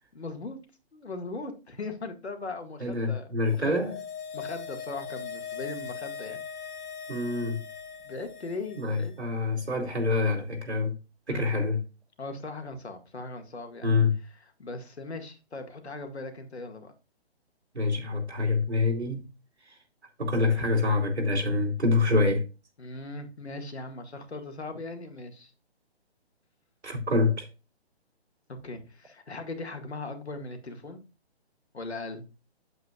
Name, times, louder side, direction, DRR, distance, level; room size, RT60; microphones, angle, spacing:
voice 1, 0.1-0.6 0.9-3.7 4.3-6.4 8.0-9.2 11.3-11.5 12.2-16.9 22.8-25.5 28.5-31.0 31.7-32.2, left 3 dB, 75° left, 2.0 m, -39 dB
voice 2, 2.8-4.0 7.1-7.6 8.8-11.0 11.3-11.8 13.8-14.1 17.7-19.3 20.2-22.4 26.8-27.5, left 3 dB, 85° right, 2.7 m, -26 dB
sound 1, 3.5-9.0 9.3-9.4, left 7 dB, 15° left, 0.6 m, -40 dB
8.4 x 7.9 x 2.4 m
figure-of-eight pair, 140°, 33 cm